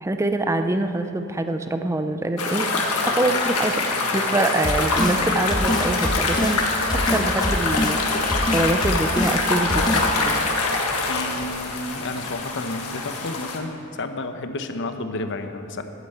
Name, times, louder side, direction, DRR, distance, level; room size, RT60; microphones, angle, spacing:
voice 1, 0.0-3.8 4.1-6.6 6.9-8.0 8.5-10.6, right 2 dB, 15° right, 7 dB, 0.5 m, -25 dB
sound 1, 2.4-13.6, left 3 dB, 85° left, 1.7 m, -24 dB
sound 2, 4.6-5.2 5.5-6.6 6.9-8.0 8.3-9.4 9.7-10.1, left 1 dB, 20° left, 0.8 m, -25 dB
voice 2, 11.1-15.8, left 2 dB, 55° left, 8 dB, 0.9 m, -31 dB
11.5 x 10.0 x 7.9 m, 2.8 s
head